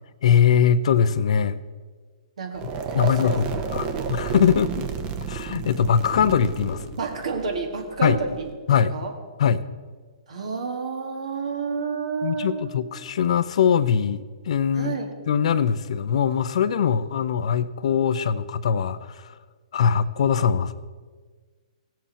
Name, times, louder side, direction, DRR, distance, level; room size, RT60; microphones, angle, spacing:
voice 1, 0.2-1.6 2.9-4.9 5.2-6.9 8.0-8.2 8.7-8.9 9.4-9.6 12.2-14.9 15.3-19.3 19.7-20.8, left 7 dB, 60° left, 14 dB, 0.6 m, -22 dB
voice 2, 2.4-3.4 3.9-4.2 7.0-8.5 8.9-9.1 10.3-12.7 14.7-15.1, right 4 dB, 65° right, 3 dB, 2.2 m, -30 dB
sound 1, 2.5-8.5, right 6 dB, 30° right, 1.0 m, -32 dB
17.5 x 7.6 x 4.2 m, 1.5 s
hypercardioid pair, 130°, 4 cm